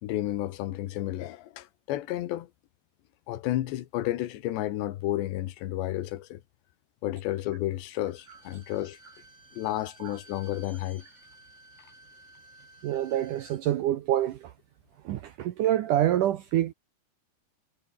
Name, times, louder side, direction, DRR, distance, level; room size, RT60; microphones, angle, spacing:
voice 1, 0.0-2.5 3.3-6.4 7.0-9.0 9.6-11.1, left 14 dB, 85° left, 3.6 m, -31 dB
Bowed string instrument, 8.0-13.6 13.9-14.0, right 1 dB, 15° right, 7.3 m, -55 dB
voice 2, 12.8-14.5 15.1-16.7, right 12 dB, 75° right, 1.9 m, -26 dB
omnidirectional pair, 4.9 m